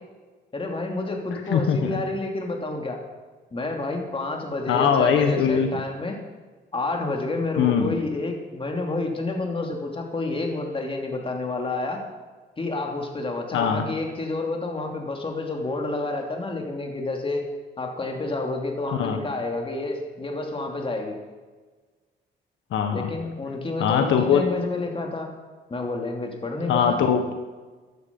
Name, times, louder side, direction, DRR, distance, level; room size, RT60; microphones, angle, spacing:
voice 1, 0.5-3.0 3.5-6.2 6.7-12.0 12.6-17.5 17.8-21.2 22.9-25.3 25.7-27.0, left 2 dB, 25° left, 2 dB, 2.9 m, -29 dB
voice 2, 1.3-2.0 4.7-5.7 7.6-7.9 13.5-13.8 18.9-19.2 22.7-23.1 23.8-24.4 26.7-27.3, left 7 dB, 85° left, 5 dB, 1.4 m, -21 dB
15.0 x 11.0 x 5.4 m, 1.3 s
cardioid pair, 100°, 20 cm